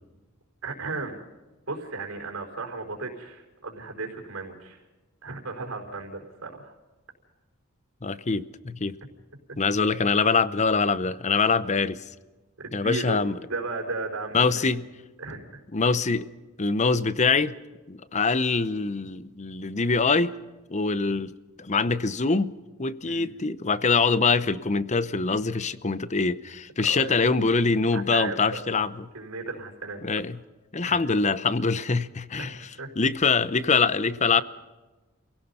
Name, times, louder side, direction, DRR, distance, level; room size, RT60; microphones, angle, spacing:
voice 1, 0.6-1.2 1.7-4.8 5.2-6.7 12.6-14.7 15.2-15.5 23.0-23.3 26.8-27.1 27.9-28.6 29.1-30.2 30.8-31.1 32.4-32.9, right 3 dB, 70° right, 1 dB, 4.5 m, -35 dB
voice 2, 8.0-8.9 9.6-12.0 12.7-13.4 14.3-14.8 15.7-16.3 16.6-17.5 17.9-20.3 20.7-21.3 21.6-22.5 22.8-29.0 30.0-30.4 30.7-32.6 33.0-34.4, left 4 dB, 30° left, 15 dB, 0.7 m, -24 dB
28.5 x 17.5 x 5.6 m, 1.2 s
head